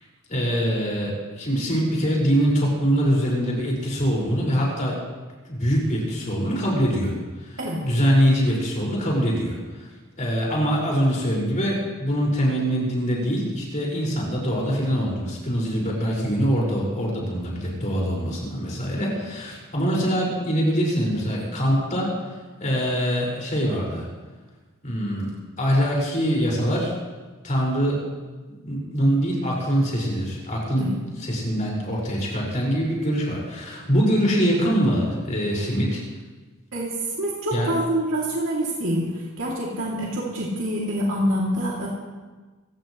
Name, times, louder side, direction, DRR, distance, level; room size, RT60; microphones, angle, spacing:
voice 1, 0.3-5.0 5.4-9.9 10.2-22.1 22.6-24.1 24.8-25.3 25.6-26.9 27.4-28.0 28.5-30.9 31.2-36.0 37.5-37.7, equal, 35° left, -4 dB, 5.6 m, -23 dB
voice 2, 36.7-41.9, right 1 dB, 65° right, -5 dB, 2.9 m, -26 dB
24.0 x 17.0 x 3.2 m, 1.3 s
head